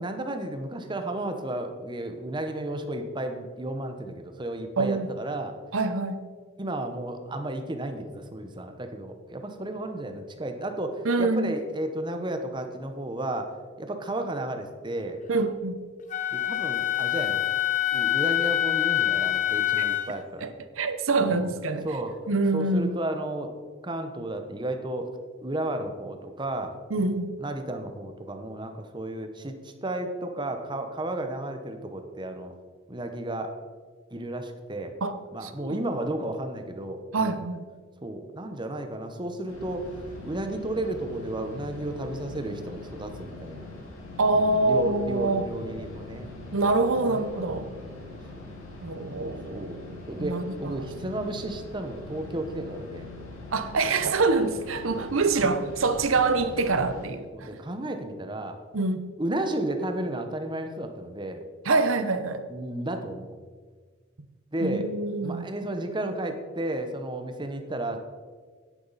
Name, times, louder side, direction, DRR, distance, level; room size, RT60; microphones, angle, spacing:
voice 1, 0.0-5.5 6.6-15.2 16.3-17.4 17.9-20.5 21.2-21.5 21.8-22.2 22.5-23.5 23.8-25.1 25.4-26.7 27.4-32.5 32.9-33.5 34.1-34.9 35.3-37.5 38.0-39.9 40.2-43.7 44.3-46.3 47.0-48.4 49.2-49.8 50.1-53.1 54.9-55.5 56.8-57.0 57.3-58.6 59.2-61.4 62.5-63.3 64.5-64.9 65.2-68.0, right 1 dB, 20° right, 0.9 m, -33 dB
voice 2, 4.8-5.1 5.7-6.2 11.0-11.5 15.3-15.8 20.4-20.5 20.8-21.9 22.3-22.9 26.9-27.3 35.0-35.2 35.4-35.8 37.1-37.6 44.2-45.5 46.5-47.7 48.8-50.9 53.5-57.5 58.7-59.1 61.6-62.5 64.6-65.5, right 3 dB, 85° right, 0.8 m, -25 dB
Wind instrument woodwind instrument, 16.1-20.2, left 13 dB, 40° left, 0.6 m, -25 dB
sound 1, 39.5-57.1, left 2 dB, 90° left, 2.9 m, -42 dB
10.0 x 9.7 x 4.1 m
head